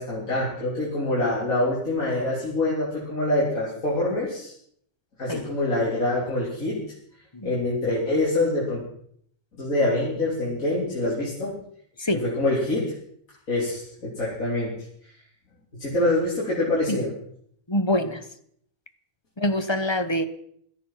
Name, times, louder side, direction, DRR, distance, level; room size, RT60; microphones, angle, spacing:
voice 1, 0.0-4.5 5.2-6.8 7.4-8.8 9.6-11.5 12.1-12.9 13.5-14.7 15.0-15.1 15.8-17.1, left 2 dB, 65° left, -6 dB, 4.2 m, -25 dB
voice 2, 17.7-18.2 19.4-20.2, left 1 dB, 20° left, 9 dB, 1.1 m, -25 dB
17.0 x 13.5 x 5.9 m, 0.66 s
omnidirectional pair, 1.5 m